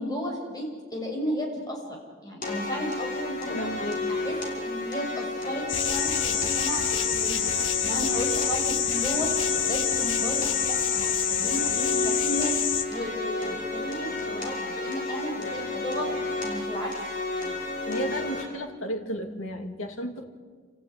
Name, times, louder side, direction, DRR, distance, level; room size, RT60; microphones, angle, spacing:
voice 1, 0.0-1.8 2.2-3.7 4.1-7.4 7.8-9.3 9.7-12.6 12.9-16.2 16.4-16.9, equal, 20° left, -1 dB, 6.8 m, -34 dB
sound 1, 2.4-18.4, left 2 dB, 40° left, 5.7 m, -32 dB
voice 2, 3.5-4.0 17.9-20.3, equal, 80° left, 5 dB, 2.6 m, -33 dB
sound 2, 5.7-12.8, left 8 dB, 65° left, 1.7 m, -27 dB
29.5 x 15.0 x 9.8 m, 1.6 s
head